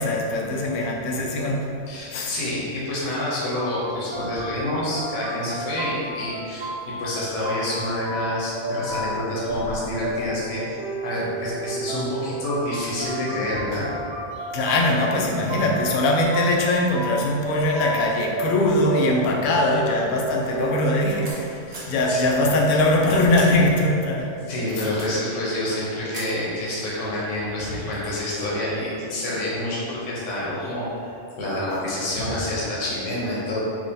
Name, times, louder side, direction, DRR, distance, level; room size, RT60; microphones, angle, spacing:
voice 1, 0.0-1.7 2.1-2.3 14.5-24.3 24.8-24.9, left 1 dB, 60° left, -1 dB, 0.5 m, -21 dB
voice 2, 1.9-10.6 11.0-13.9 14.3-14.5 21.7-22.5 24.5-33.6, left 1 dB, 90° left, -6 dB, 1.0 m, -28 dB
sound 1, 3.5-21.3, right 1 dB, 25° right, 0.8 m, -33 dB
sound 2, 13.0-13.2 13.7-14.6 15.3-15.9 16.6-16.7 17.1-17.2 17.4-19.4 19.9-22.0 22.6-23.6 24.0-25.4 26.1-26.5, right 2 dB, 60° right, 1.0 m, -42 dB
3.6 x 2.9 x 2.6 m, 2.6 s
omnidirectional pair, 1.3 m